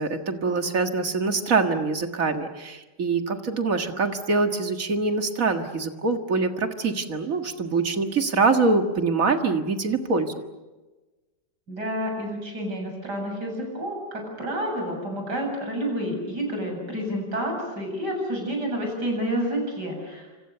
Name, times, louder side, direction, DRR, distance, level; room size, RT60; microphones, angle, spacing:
voice 1, 0.0-10.3, right 4 dB, 50° right, 6 dB, 2.1 m, -24 dB
voice 2, 11.7-20.3, equal, 70° right, 2 dB, 8.5 m, -29 dB
28.0 x 26.0 x 6.8 m, 1.2 s
omnidirectional pair, 1.9 m